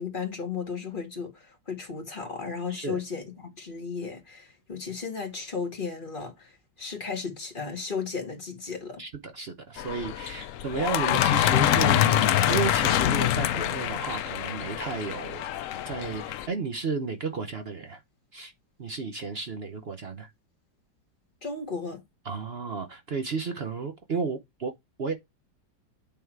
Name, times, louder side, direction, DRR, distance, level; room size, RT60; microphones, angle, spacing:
voice 1, 0.0-9.0 21.4-22.0, left 5 dB, 25° left, 2.0 m, -35 dB
voice 2, 2.7-3.0 9.0-15.5 15.8-18.0 18.3-18.5 18.8-20.3 22.2-25.1, right 4 dB, 55° right, 0.7 m, -33 dB
sound 1, 9.8-16.5, left 12 dB, 85° left, 0.7 m, -25 dB
8.9 x 3.6 x 4.6 m
omnidirectional pair, 2.0 m